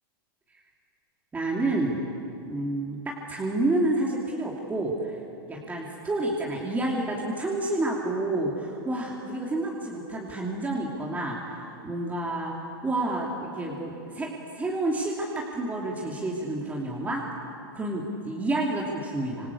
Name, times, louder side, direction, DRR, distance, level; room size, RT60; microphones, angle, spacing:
voice 1, 1.3-2.1 2.4-5.2 5.5-17.3 17.7-19.5, right 2 dB, 15° right, -3 dB, 2.8 m, -29 dB
26.5 x 26.0 x 8.4 m, 2.8 s
supercardioid pair, 140°, 13 cm